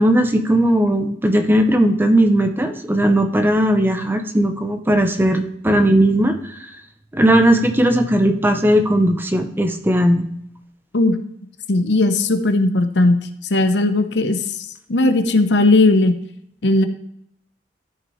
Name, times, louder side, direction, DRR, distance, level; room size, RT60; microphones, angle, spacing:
voice 1, 0.0-6.6 7.1-10.3, right 1 dB, 10° right, 6 dB, 0.6 m, -17 dB
voice 2, 11.7-13.2 13.5-14.6 14.9-16.2 16.6-16.9, left 2 dB, 70° left, 8 dB, 0.7 m, -16 dB
13.0 x 5.9 x 3.1 m, 0.73 s
head